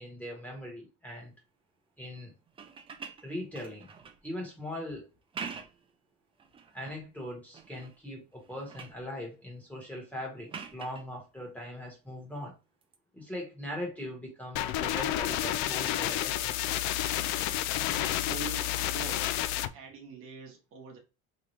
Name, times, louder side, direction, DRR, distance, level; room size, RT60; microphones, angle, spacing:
voice 1, 0.0-1.3 2.0-2.3 3.2-3.9 4.2-5.1 6.7-12.6 13.1-16.8, left 1 dB, 5° left, 1.3 m, -40 dB
sound 1, 2.5-4.3 5.2-5.9 6.4-7.0 7.5-8.0 8.3-9.0 10.5-11.1 12.8-13.0, right 6 dB, 20° right, 0.4 m, -44 dB
sound 2, 14.5-19.7, left 13 dB, 70° left, 0.4 m, -30 dB
voice 2, 17.9-19.3 19.7-21.0, right 6 dB, 45° right, 1.0 m, -44 dB
3.6 x 3.0 x 3.1 m
cardioid pair, 150°, 29 cm